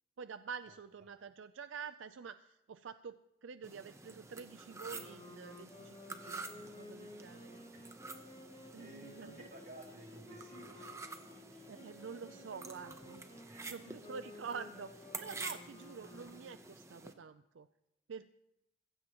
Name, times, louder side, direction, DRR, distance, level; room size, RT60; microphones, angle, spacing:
voice 1, 0.2-7.6 8.7-9.3 11.7-13.2 13.7-17.7 18.1-18.3, right 6 dB, 90° right, 12 dB, 0.4 m, -48 dB
sound 1, 3.6-17.1, right 3 dB, 15° right, 0.8 m, -49 dB
sound 2, 4.9-16.7, left 2 dB, 35° left, 2.5 m, -55 dB
voice 2, 8.7-11.0 13.5-13.9, right 1 dB, 55° right, -4 dB, 3.4 m, -54 dB
22.5 x 15.5 x 3.0 m, 0.84 s
head